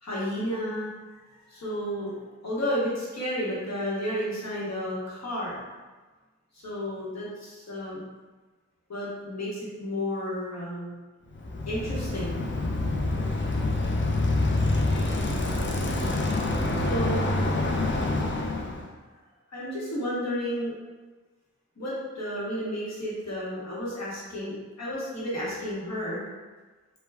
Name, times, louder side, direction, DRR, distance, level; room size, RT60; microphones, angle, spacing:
voice 1, 0.0-0.9 1.5-2.2 2.4-5.6 6.5-8.0 8.9-11.0 11.7-12.4 15.6-15.8 16.7-17.3 18.4-18.6 19.5-20.7 21.8-26.2, equal, 60° left, -7 dB, 0.9 m, -32 dB
Bicycle, 11.3-18.9, left 2 dB, 40° left, 0.4 m, -26 dB
3.3 x 2.1 x 2.2 m, 1.3 s
wide cardioid pair, 55°, 30 cm